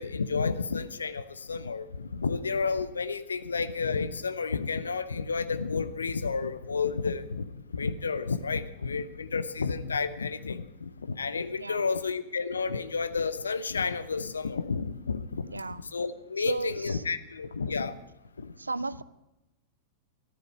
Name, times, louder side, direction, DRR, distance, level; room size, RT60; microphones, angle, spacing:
voice 1, 0.0-15.6 15.9-18.0 18.4-18.5, left 5 dB, 75° left, 12 dB, 0.8 m, -31 dB
voice 2, 11.6-11.9 15.5-15.8 16.4-17.0 18.6-19.0, right 3 dB, 80° right, 19 dB, 0.4 m, -34 dB
14.0 x 12.0 x 5.3 m, 0.95 s
figure-of-eight pair, 95°, 0 cm